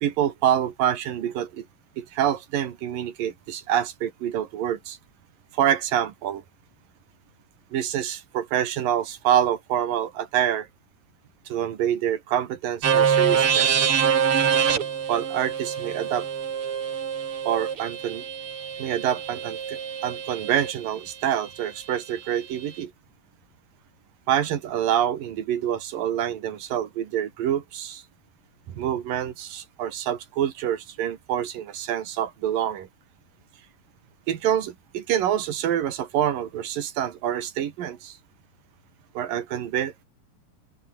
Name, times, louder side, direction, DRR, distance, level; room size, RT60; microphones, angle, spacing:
voice 1, 0.0-1.7 2.0-5.0 5.5-6.4 7.7-10.7 11.5-13.9 15.1-16.3 17.5-18.3 18.8-22.9 24.3-28.0 28.7-32.9 34.3-38.2 39.2-40.1, right 10 dB, 80° right, 3.6 m, -26 dB
sound 1, 12.8-20.7, right 7 dB, 45° right, 2.6 m, -25 dB
open air
omnidirectional pair, 3.9 m